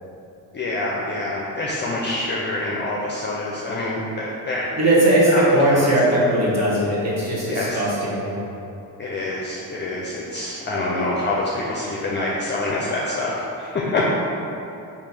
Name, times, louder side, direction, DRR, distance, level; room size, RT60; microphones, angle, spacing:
voice 1, 0.5-4.7 5.3-5.9 7.5-7.8 9.0-14.0, left 2 dB, 30° left, -4 dB, 0.5 m, -26 dB
voice 2, 4.8-8.4, right 1 dB, 45° right, -6 dB, 1.4 m, -19 dB
4.5 x 2.9 x 4.1 m, 2.8 s
cardioid pair, 110°, 36 cm